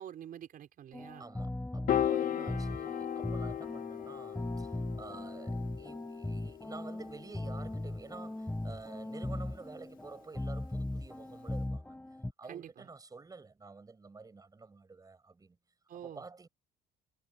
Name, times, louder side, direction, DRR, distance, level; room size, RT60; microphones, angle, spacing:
voice 1, 0.0-1.3 2.3-2.8 12.5-12.9 15.9-16.2, right 10 dB, 55° right, 4.9 m, -47 dB
sound 1, 0.9-12.3, left 1 dB, 10° left, 5.1 m, -39 dB
voice 2, 1.2-12.0 12.4-15.6 15.9-16.5, right 4 dB, 20° right, 7.8 m, -50 dB
Piano, 1.9-8.3, left 10 dB, 55° left, 1.5 m, -37 dB
cardioid pair, 110°, 17 cm